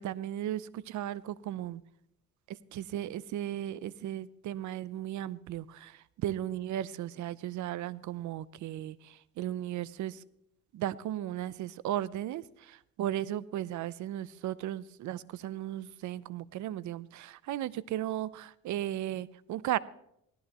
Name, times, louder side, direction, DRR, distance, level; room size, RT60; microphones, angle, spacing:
voice 1, 0.0-1.8 2.5-10.2 10.7-19.8, right 12 dB, 70° right, 19 dB, 0.6 m, -36 dB
18.0 x 14.5 x 3.0 m, 0.78 s
cardioid pair, 90°, 30 cm